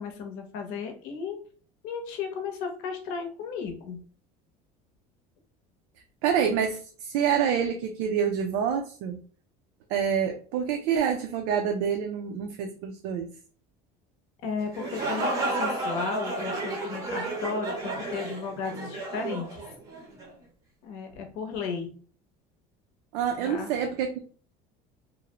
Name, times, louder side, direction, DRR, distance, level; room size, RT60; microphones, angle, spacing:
voice 1, 0.0-1.4 1.8-4.0 14.4-19.7 20.8-22.0 23.4-23.7, left 5 dB, 65° left, 4 dB, 0.7 m, -34 dB
voice 2, 6.2-9.2 9.9-13.3 23.1-24.2, right 8 dB, 75° right, 3 dB, 0.4 m, -27 dB
sound 1, 14.6-20.3, right 2 dB, 20° right, 0.6 m, -32 dB
2.5 x 2.0 x 2.8 m, 0.42 s
cardioid pair, 170°, 15 cm